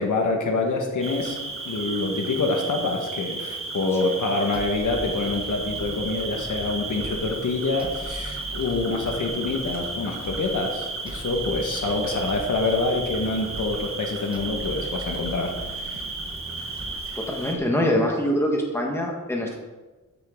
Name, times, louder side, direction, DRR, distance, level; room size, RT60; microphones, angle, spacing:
voice 1, 0.0-1.4 1.6-16.0, left 3 dB, 65° left, 2 dB, 1.7 m, -26 dB
Cricket, 1.0-17.6, right 3 dB, 40° right, 1.6 m, -34 dB
sound 1, 4.5-17.6, right 1 dB, 15° right, 0.9 m, -40 dB
voice 2, 17.1-19.6, equal, 10° left, -1 dB, 1.6 m, -24 dB
13.5 x 7.7 x 3.9 m, 1.2 s
wide cardioid pair, 180°, 32 cm